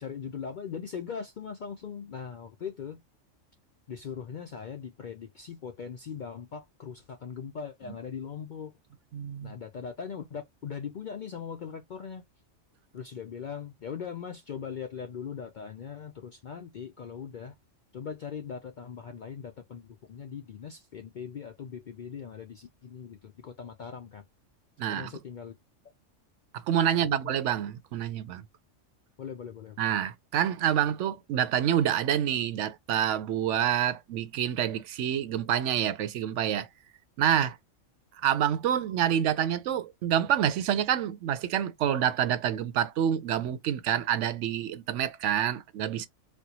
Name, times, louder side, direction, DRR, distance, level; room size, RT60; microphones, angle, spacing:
voice 1, 0.0-3.0 3.9-8.7 9.4-12.2 12.9-17.5 17.9-24.2 24.9-25.5 26.9-27.3 29.2-29.8, left 7 dB, 60° left, 0.5 m, -40 dB
voice 2, 9.1-9.5 24.8-25.1 26.5-28.4 29.8-36.7 37.2-37.6 38.2-46.1, right 10 dB, 75° right, 0.9 m, -27 dB
4.3 x 2.2 x 2.8 m
omnidirectional pair, 1.3 m